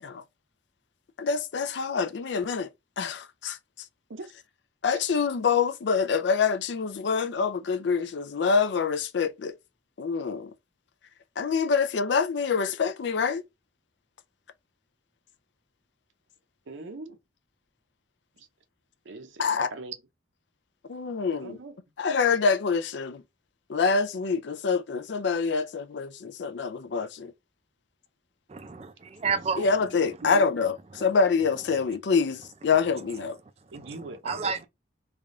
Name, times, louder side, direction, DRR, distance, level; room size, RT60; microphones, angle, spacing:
voice 1, 1.2-2.7 3.0-3.9 4.8-9.6 10.0-10.5 11.4-13.4 19.4-19.7 20.9-21.6 22.0-23.2 23.7-27.3 29.6-33.4, left 5 dB, 65° left, 0.4 m, -26 dB
voice 2, 16.7-17.2 18.4-18.5 19.0-20.0 21.3-21.8 30.2-30.5 33.7-34.7, right 3 dB, 75° right, 0.6 m, -40 dB
voice 3, 28.5-29.7 34.3-34.7, right 5 dB, 30° right, 0.4 m, -30 dB
3.4 x 2.3 x 3.7 m
head